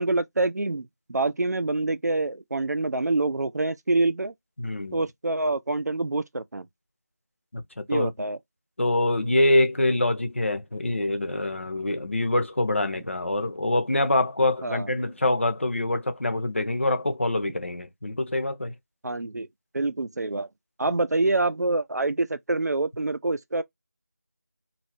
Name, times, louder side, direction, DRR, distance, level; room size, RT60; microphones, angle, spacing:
voice 1, 0.0-4.3 4.9-6.7 7.9-8.4 14.6-14.9 19.0-19.5 19.7-20.5 20.8-23.6, right 2 dB, 75° right, 0.5 m, -26 dB
voice 2, 4.6-5.0 7.5-8.1 8.8-18.7 20.9-21.0, left 1 dB, 50° left, 0.6 m, -25 dB
2.4 x 2.0 x 3.3 m
figure-of-eight pair, 175°, 9 cm